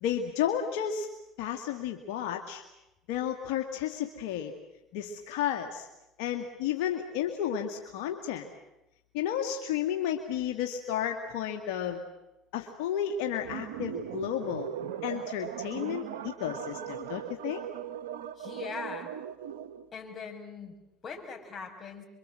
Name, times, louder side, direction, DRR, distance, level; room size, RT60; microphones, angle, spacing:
voice 1, 0.0-1.1 1.4-2.6 3.1-4.5 4.9-5.9 6.2-8.5 9.1-12.0 12.5-14.7 15.0-17.6, left 9 dB, 75° left, 4 dB, 2.2 m, -32 dB
sound 1, 13.4-19.9, right 10 dB, 85° right, 1.3 m, -39 dB
voice 2, 18.4-19.1 19.9-22.0, left 5 dB, 35° left, 3 dB, 6.7 m, -41 dB
27.5 x 24.0 x 7.8 m, 0.94 s
supercardioid pair, 85°, 0 cm